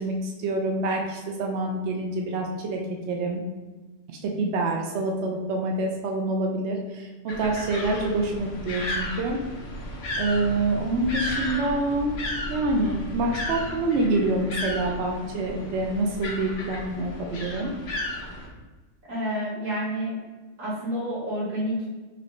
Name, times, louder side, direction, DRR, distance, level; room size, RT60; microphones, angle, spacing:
voice 1, 0.0-2.8 3.1-3.4 4.1-9.4 10.2-12.2 12.5-17.7, right 2 dB, 65° right, 0 dB, 0.8 m, -26 dB
sound 1, 7.3-18.5, left 1 dB, 60° left, 0.9 m, -34 dB
voice 2, 19.1-20.2 20.6-21.9, equal, 85° right, -6 dB, 1.7 m, -29 dB
4.2 x 2.6 x 3.1 m, 1.2 s
omnidirectional pair, 1.3 m